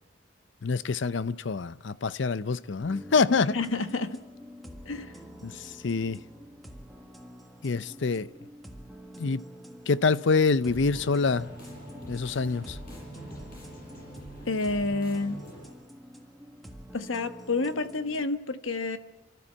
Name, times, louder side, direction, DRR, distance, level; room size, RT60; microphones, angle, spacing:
voice 1, 0.6-3.6 5.4-6.2 7.6-8.3 9.2-9.4 9.9-11.5 12.1-12.8, left 4 dB, 65° left, 0.6 m, -26 dB
sound 1, 2.8-18.2, equal, ahead, 1.5 m, -47 dB
voice 2, 3.5-4.2 4.8-5.2 14.5-15.4 16.9-19.0, left 3 dB, 90° left, 1.2 m, -29 dB
sound 2, 10.6-15.7, right 1 dB, 45° left, 6.1 m, -44 dB
29.5 x 13.0 x 7.3 m
head